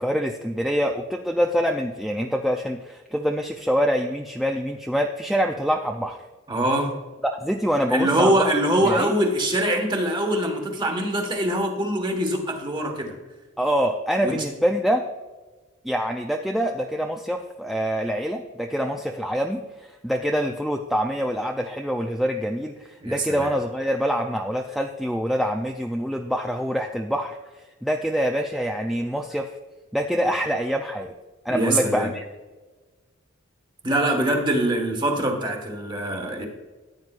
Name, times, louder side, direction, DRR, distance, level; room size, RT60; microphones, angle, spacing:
voice 1, 0.0-6.2 7.4-8.5 8.8-9.2 13.6-15.0 15.8-29.5 29.9-31.1 31.4-32.2, equal, ahead, 2 dB, 0.4 m, -25 dB
voice 2, 6.5-6.9 7.9-13.1 14.2-14.3 23.0-23.5 31.5-32.1 33.8-36.5, right 1 dB, 20° right, 3 dB, 1.4 m, -23 dB
14.0 x 9.3 x 2.4 m, 1.3 s
head